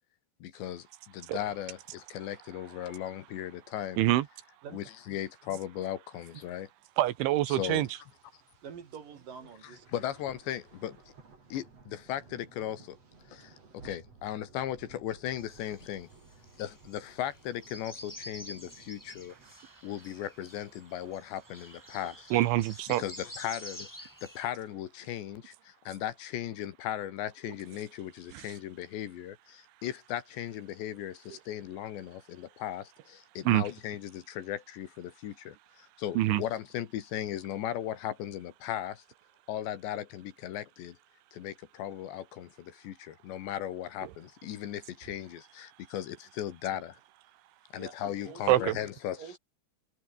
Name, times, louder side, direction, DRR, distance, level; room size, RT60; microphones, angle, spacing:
voice 1, 0.4-4.0 4.7-6.7 7.5-7.9 9.9-11.0 11.5-13.0 13.3-16.1 16.6-19.4 19.8-22.3 23.0-39.0 39.5-41.0 41.3-47.0 47.7-49.4, left 11 dB, 75° left, 3.8 m, -37 dB
sound 1, 6.9-19.5, right 4 dB, 35° right, 5.4 m, -57 dB
voice 2, 7.0-7.9 22.3-23.0 28.3-28.5 33.5-33.7 36.2-36.4 44.0-44.1 48.5-48.8, right 15 dB, 80° right, 3.6 m, -25 dB
voice 3, 8.6-9.9 47.8-48.7 49.1-49.4, right 7 dB, 50° right, 3.9 m, -46 dB
sound 2, 15.4-24.5, equal, 5° left, 5.7 m, -49 dB
omnidirectional pair, 5.4 m